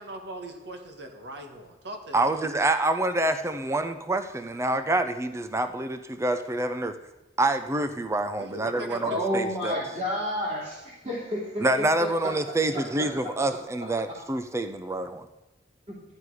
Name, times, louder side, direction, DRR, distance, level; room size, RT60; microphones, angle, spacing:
voice 1, 0.0-2.2 8.4-9.5, right 1 dB, 65° right, 4 dB, 1.5 m, -39 dB
voice 2, 2.1-6.9 7.4-9.8 11.6-15.3, right 2 dB, 15° right, 9 dB, 0.5 m, -27 dB
voice 3, 9.0-10.8 11.0-12.3 12.7-13.3 13.8-13.9 15.9-16.0, equal, 35° right, -6 dB, 2.9 m, -31 dB
12.5 x 9.4 x 4.8 m, 1.0 s
head